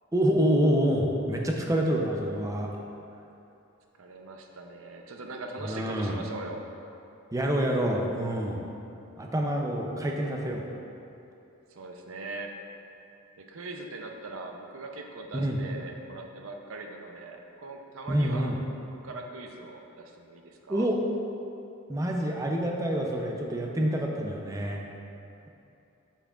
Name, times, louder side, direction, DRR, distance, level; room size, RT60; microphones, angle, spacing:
voice 1, 0.1-2.7 5.6-6.2 7.3-8.7 9.2-10.7 15.3-15.6 18.1-18.6 20.7-21.0 21.9-24.8, equal, 15° right, 0 dB, 0.5 m, -27 dB
voice 2, 4.0-6.6 11.7-12.6 13.4-18.6 18.9-20.9, right 2 dB, 65° right, 3 dB, 0.6 m, -41 dB
8.3 x 5.7 x 2.4 m, 2.8 s
head